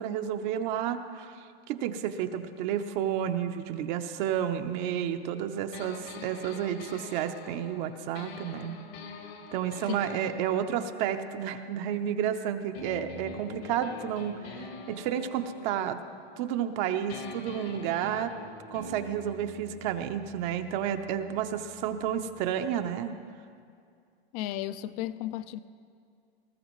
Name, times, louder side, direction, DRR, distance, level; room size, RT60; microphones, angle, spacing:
voice 1, 0.0-8.8 9.5-16.0 16.4-18.3 18.7-23.1, right 9 dB, 45° right, 0.7 m, -31 dB
sound 1, 5.7-12.3 12.7-16.8 17.1-22.8, left 2 dB, 70° left, 2.0 m, -45 dB
voice 2, 24.3-25.6, left 13 dB, 40° left, 0.4 m, -34 dB
19.5 x 14.0 x 3.1 m
supercardioid pair, 140°, 32 cm